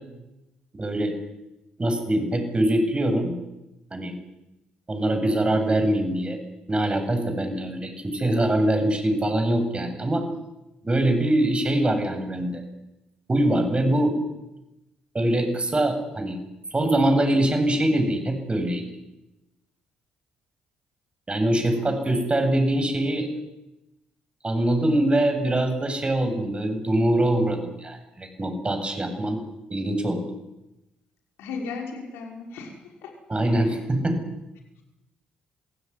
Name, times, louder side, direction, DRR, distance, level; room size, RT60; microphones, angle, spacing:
voice 1, 0.7-1.1 1.8-3.4 3.9-4.1 4.9-6.4 6.7-10.3 10.8-12.6 13.3-14.2 15.1-16.4 16.7-18.8 21.3-23.3 24.4-29.4 29.7-30.3 33.3-34.2, right 1 dB, 25° right, 6 dB, 7.9 m, -23 dB
voice 2, 31.4-33.1 33.4-33.5, left 4 dB, 75° left, 1 dB, 5.9 m, -36 dB
27.5 x 16.5 x 9.9 m, 0.95 s
hypercardioid pair, 50°, 4 cm